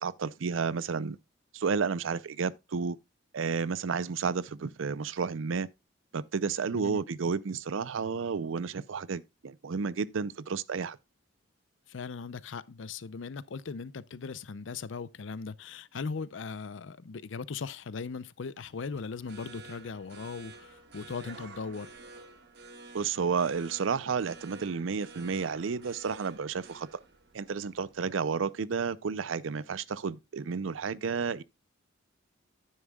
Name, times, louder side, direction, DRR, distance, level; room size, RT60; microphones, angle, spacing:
voice 1, 0.0-1.2 1.5-3.0 3.3-5.7 6.1-11.0 22.9-26.9 27.3-31.4, right 5 dB, 80° right, 0.5 m, -31 dB
voice 2, 11.9-21.9, left 5 dB, 70° left, 0.5 m, -39 dB
sound 1, 18.6-28.2, right 3 dB, 55° right, 1.4 m, -51 dB
11.0 x 9.7 x 2.3 m
head